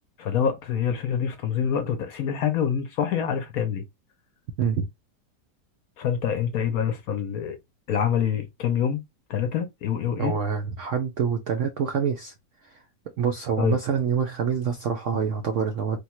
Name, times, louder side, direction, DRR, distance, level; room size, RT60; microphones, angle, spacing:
voice 1, 0.2-3.8 6.0-7.6 7.9-9.0 9.3-10.3 13.6-13.8, left 8 dB, 65° left, 0.9 m, -26 dB
voice 2, 10.2-12.3 13.2-16.0, right 7 dB, 75° right, 0.7 m, -26 dB
3.4 x 2.3 x 3.0 m
omnidirectional pair, 1.9 m